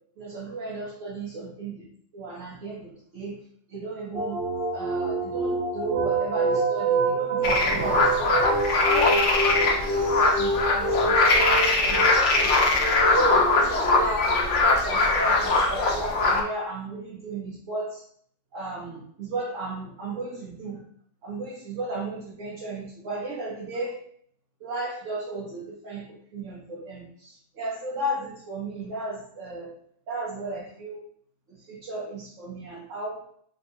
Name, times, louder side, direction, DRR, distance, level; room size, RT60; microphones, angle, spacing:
voice 1, 0.2-1.7 2.1-3.4 3.7-4.4 4.7-8.5 8.9-12.8 13.1-14.3 14.6-18.0 18.5-20.8 21.2-24.0 24.6-26.0 26.3-29.7 30.1-31.0 31.7-33.2, right 2 dB, 75° right, -7 dB, 1.2 m, -34 dB
sound 1, 4.1-14.8, right 3 dB, 60° right, 0.9 m, -27 dB
sound 2, 7.4-16.4, left 3 dB, 75° left, 0.9 m, -22 dB
3.7 x 2.8 x 2.2 m, 0.63 s
omnidirectional pair, 1.3 m